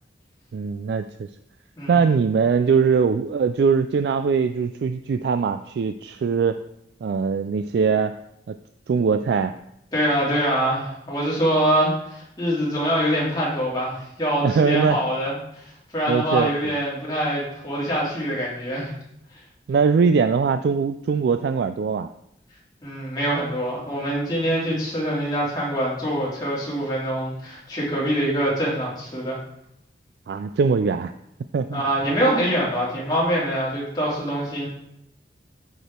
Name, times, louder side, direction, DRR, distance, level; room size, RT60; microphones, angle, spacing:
voice 1, 0.5-1.3 1.9-6.6 7.0-8.2 8.5-8.6 8.9-9.5 14.4-15.0 16.1-16.7 19.7-22.1 30.3-31.1 31.5-31.8, right 5 dB, 70° right, 9 dB, 0.3 m, -21 dB
voice 2, 9.9-15.6 15.9-18.9 22.8-29.4 31.7-34.7, equal, 20° left, -7 dB, 2.5 m, -24 dB
8.0 x 4.8 x 4.4 m, 0.78 s
head